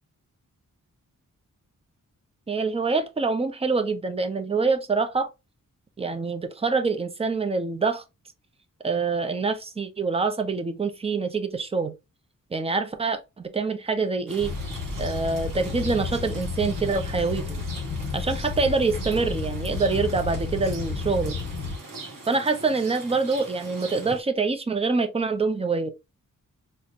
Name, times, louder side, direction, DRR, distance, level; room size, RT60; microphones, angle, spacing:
voice 1, 2.5-5.3 6.0-8.0 8.8-11.9 12.5-14.5 15.0-17.6 18.1-21.4 22.3-25.9, right 4 dB, 20° right, 0.5 m, -25 dB
Rain, 14.3-24.2, right 3 dB, 85° right, 1.4 m, -42 dB
sound 1, 14.4-21.8, left 4 dB, 75° left, 1.2 m, -32 dB
5.7 x 2.1 x 2.5 m
wide cardioid pair, 165°, 32 cm